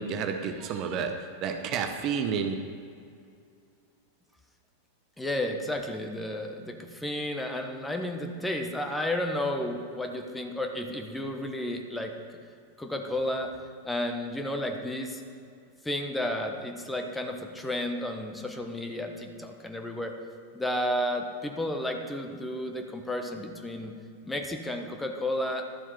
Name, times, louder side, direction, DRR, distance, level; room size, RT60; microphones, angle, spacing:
voice 1, 0.0-2.5, right 6 dB, 35° right, 5 dB, 0.9 m, -30 dB
voice 2, 5.2-12.1 12.8-13.5 13.8-15.2 15.8-20.1 20.5-23.9 24.3-25.6, left 1 dB, 5° left, 4 dB, 1.2 m, -32 dB
12.5 x 7.3 x 5.7 m, 2.4 s
figure-of-eight pair, 90°, 0 cm